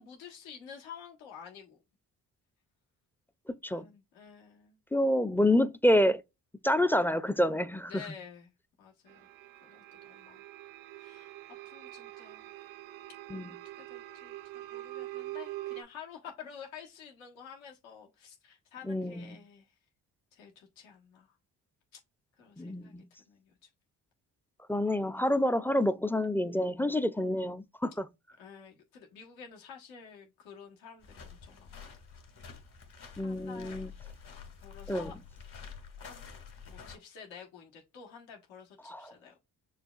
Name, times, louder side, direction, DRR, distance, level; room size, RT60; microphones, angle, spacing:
voice 1, 0.0-1.8 3.7-4.8 7.9-8.5 8.8-9.3 9.6-10.4 11.0-11.3 11.6-12.5 13.7-19.8 20.3-21.4 21.9-22.0 22.4-23.7 28.4-31.7 33.2-33.8 34.6-35.1 36.0-36.3 36.6-39.4, left 7 dB, 80° left, 1.3 m, -50 dB
voice 2, 4.9-6.2 6.6-7.9 13.3-13.5 18.9-19.3 22.6-23.0 24.7-28.0 33.2-33.9 34.9-35.1 38.9-39.0, left 1 dB, 5° left, 0.4 m, -27 dB
sound 1, 9.1-15.8, right 16 dB, 80° right, 0.6 m, -44 dB
sound 2, 31.0-37.0, left 6 dB, 55° left, 2.4 m, -48 dB
6.4 x 2.3 x 2.4 m
hypercardioid pair, 50°, 45 cm